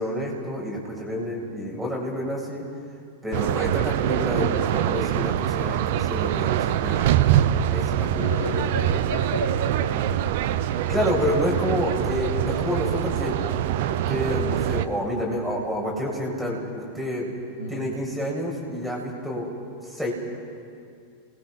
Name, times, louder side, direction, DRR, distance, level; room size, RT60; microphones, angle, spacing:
voice 1, 0.0-2.6 3.2-7.1 7.7-8.6 10.9-13.4 13.9-17.3 17.7-19.5 19.8-20.1, equal, ahead, -3 dB, 7.4 m, -28 dB
sound 1, 3.3-14.9, right 11 dB, 50° right, 0.9 m, -24 dB
voice 2, 8.2-10.3 17.6-17.9, equal, 80° right, -4 dB, 3.1 m, -32 dB
28.5 x 21.0 x 6.3 m, 2.3 s
figure-of-eight pair, 90°, 0 cm